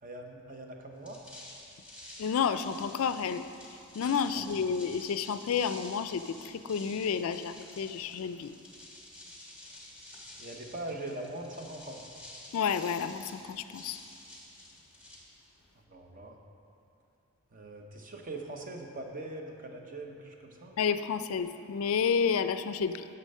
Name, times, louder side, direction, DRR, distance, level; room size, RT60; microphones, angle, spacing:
voice 1, 0.0-1.2 4.3-4.5 10.4-12.0 15.9-16.4 17.5-20.7, right 2 dB, 35° right, 2 dB, 0.8 m, -42 dB
sound 1, 0.9-15.7, left 1 dB, 5° right, 1.2 m, -50 dB
voice 2, 2.2-3.4 4.0-8.5 12.5-14.0 20.8-23.0, left 6 dB, 65° left, 11 dB, 0.3 m, -30 dB
9.9 x 6.8 x 5.4 m, 2.6 s
head